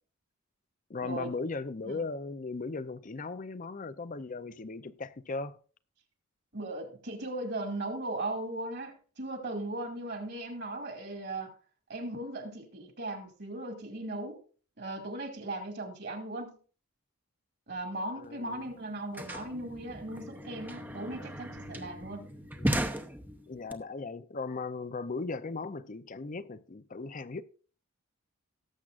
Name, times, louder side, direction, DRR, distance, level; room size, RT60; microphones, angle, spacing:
voice 1, 0.9-5.6 18.1-18.7 22.6-22.9 23.5-27.4, left 3 dB, 35° left, 0.5 m, -37 dB
voice 2, 6.5-11.5 11.9-14.4 14.8-16.6 17.7-22.2, right 2 dB, 50° right, 2.2 m, -38 dB
sound 1, 18.2-18.3 18.5-23.7, right 1 dB, 10° right, 0.7 m, -36 dB
18.0 x 7.4 x 2.5 m
head